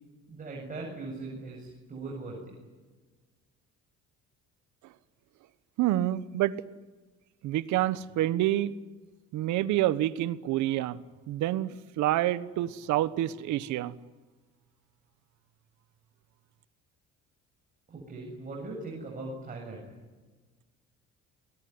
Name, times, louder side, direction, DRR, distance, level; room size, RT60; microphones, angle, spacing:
voice 1, 0.3-2.6 17.9-19.9, right 2 dB, 30° right, -1 dB, 7.7 m, -40 dB
voice 2, 5.8-6.5 7.4-8.7 9.3-11.0 11.3-13.9, right 14 dB, 80° right, 15 dB, 1.3 m, -27 dB
29.5 x 21.0 x 9.7 m, 1.3 s
cardioid pair, 125°, 29 cm